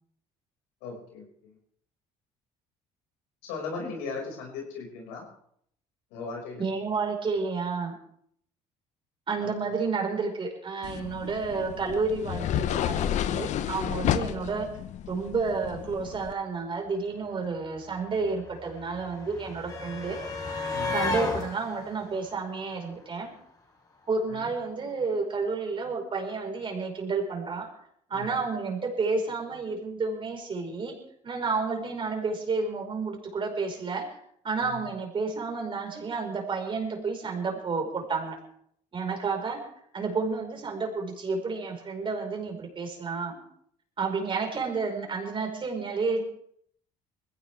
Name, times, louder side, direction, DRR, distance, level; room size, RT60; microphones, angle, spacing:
voice 1, 0.8-1.5 3.4-5.2 6.1-6.6 9.5-9.7 20.7-21.0 24.3-24.5 28.1-28.4 34.6-34.8, left 4 dB, 90° left, 0 dB, 5.8 m, -38 dB
voice 2, 6.6-8.0 9.3-14.7 15.1-20.2 20.9-23.3 24.1-27.7 28.1-31.0 31.2-34.2 34.4-38.4 38.9-39.7 39.9-43.4 44.0-46.3, right 4 dB, 40° right, 2 dB, 4.9 m, -30 dB
sound 1, 10.8-16.3, left 11 dB, 60° left, 0.8 m, -31 dB
sound 2, 16.9-17.0 17.1-23.3 24.5-24.6 24.9-25.0, left 3 dB, 30° left, 4.5 m, -35 dB
20.5 x 16.0 x 3.5 m, 0.67 s
supercardioid pair, 80°, 14 cm